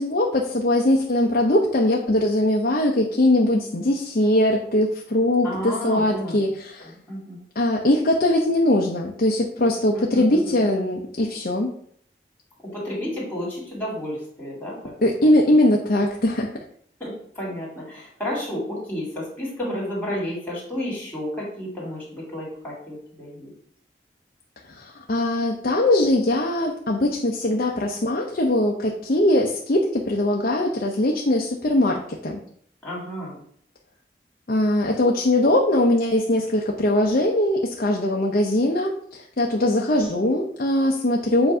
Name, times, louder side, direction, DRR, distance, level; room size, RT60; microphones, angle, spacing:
voice 1, 0.0-6.9 7.6-11.7 15.0-16.5 24.7-32.4 34.5-41.5, left 1 dB, 50° left, 0 dB, 0.6 m, -21 dB
voice 2, 5.4-6.4 7.1-7.4 9.9-10.9 12.6-14.9 15.2-15.3 17.0-23.5 32.8-33.4, left 1 dB, 10° left, -5 dB, 2.4 m, -31 dB
7.7 x 2.6 x 5.4 m, 0.63 s
head